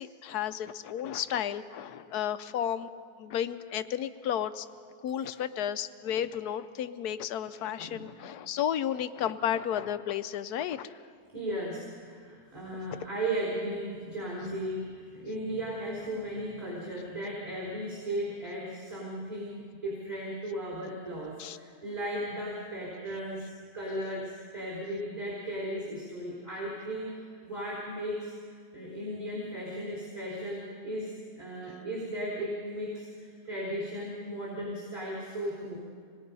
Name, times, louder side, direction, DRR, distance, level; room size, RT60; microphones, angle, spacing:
voice 1, 0.0-2.9 3.2-4.7 5.0-10.9 21.4-21.6, left 9 dB, 80° left, 12 dB, 1.3 m, -32 dB
voice 2, 7.8-8.3 11.3-23.5 23.7-28.3 28.7-35.8, right 1 dB, 20° right, -4 dB, 4.3 m, -36 dB
26.5 x 21.0 x 5.5 m, 2.1 s
omnidirectional pair, 1.7 m